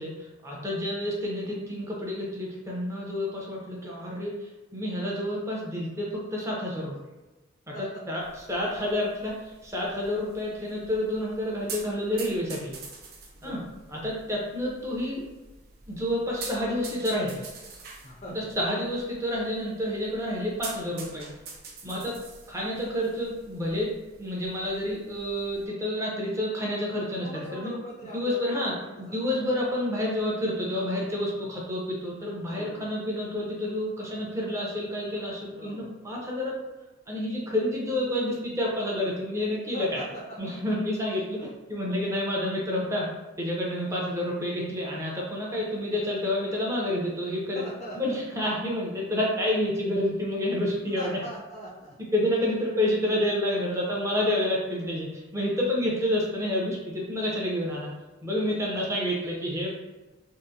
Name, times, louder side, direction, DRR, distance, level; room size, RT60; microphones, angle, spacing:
voice 1, 0.0-7.0 7.7-7.8 8.1-8.2 8.5-12.8 13.4-13.6 13.9-15.2 15.9-17.5 18.3-21.3 21.8-22.1 22.5-23.9 24.2-27.7 28.1-36.6 37.1-40.0 40.4-43.1 43.4-47.7 47.9-51.2 52.1-57.9 58.2-59.8, left 1 dB, 15° right, -4 dB, 0.7 m, -29 dB
sound 1, 8.2-25.7, right 4 dB, 50° right, 0.5 m, -46 dB
voice 2, 13.3-13.8 18.0-18.6 21.9-22.3 27.2-28.5 28.8-29.5 32.5-33.0 35.5-36.0 39.7-40.4 41.4-41.5 43.8-44.0 47.5-48.2 51.0-51.9 55.8-55.9 58.5-58.8, equal, 35° left, -4 dB, 0.5 m, -42 dB
3.6 x 2.1 x 2.7 m, 1.1 s
head